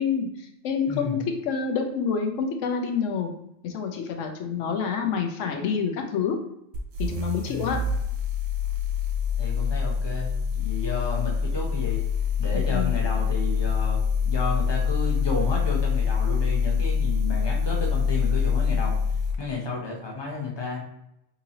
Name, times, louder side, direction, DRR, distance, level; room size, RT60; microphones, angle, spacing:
voice 1, 0.0-3.3 3.6-6.4 7.0-7.8 12.5-13.0, left 6 dB, 80° left, 4 dB, 1.0 m, -27 dB
voice 2, 0.9-1.2 7.5-7.9 9.4-12.0 12.4-14.0 14.2-19.0 19.4-20.9, left 4 dB, 25° left, -2 dB, 0.7 m, -32 dB
sound 1, 6.7-19.4, left 6 dB, 90° right, 1.0 m, -25 dB
3.8 x 2.7 x 2.9 m, 0.80 s
omnidirectional pair, 1.3 m